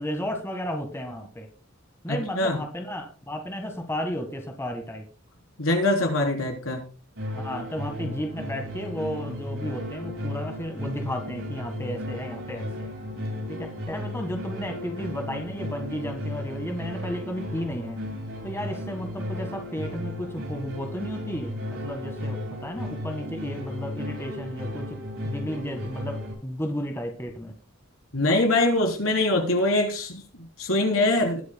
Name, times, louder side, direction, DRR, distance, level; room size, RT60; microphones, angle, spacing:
voice 1, 0.0-1.5 2.0-5.0 7.3-12.9 13.5-18.0 18.4-25.0 25.2-27.5, equal, 10° left, 4 dB, 1.5 m, -33 dB
voice 2, 2.1-2.6 5.6-6.9 28.1-31.4, left 2 dB, 75° left, 2 dB, 3.7 m, -23 dB
sound 1, 7.2-26.3, left 1 dB, 70° right, 7.5 m, -35 dB
20.5 x 9.5 x 2.2 m, 0.37 s
head